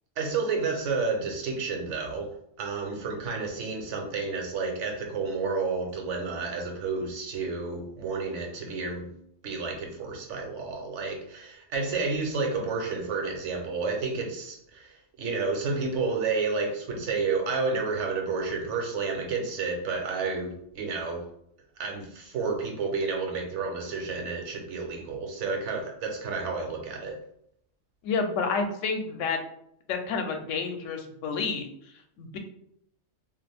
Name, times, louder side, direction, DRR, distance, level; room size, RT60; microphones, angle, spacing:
voice 1, 0.2-2.3 2.6-9.1 9.4-21.2 21.8-27.2, right 4 dB, 75° right, 2 dB, 1.0 m, -30 dB
voice 2, 28.0-29.4 29.9-31.7 32.2-32.4, left 4 dB, 80° left, 5 dB, 0.9 m, -29 dB
2.6 x 2.5 x 3.3 m, 0.72 s
omnidirectional pair, 1.3 m